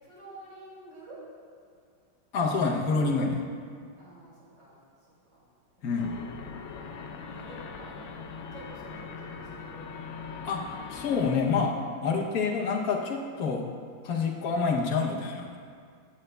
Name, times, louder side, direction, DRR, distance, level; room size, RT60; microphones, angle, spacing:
voice 1, 0.0-1.2 4.0-4.8 5.3-5.4 6.0-6.2 7.3-9.9, right 1 dB, 55° right, -7 dB, 3.4 m, -49 dB
voice 2, 2.3-3.4 5.8-6.2 10.4-13.7 14.0-15.6, left 4 dB, 55° left, 0 dB, 1.1 m, -27 dB
sound 1, 6.0-11.4, left 5 dB, 75° left, 1.4 m, -41 dB
14.5 x 8.8 x 2.2 m, 2.1 s
omnidirectional pair, 2.3 m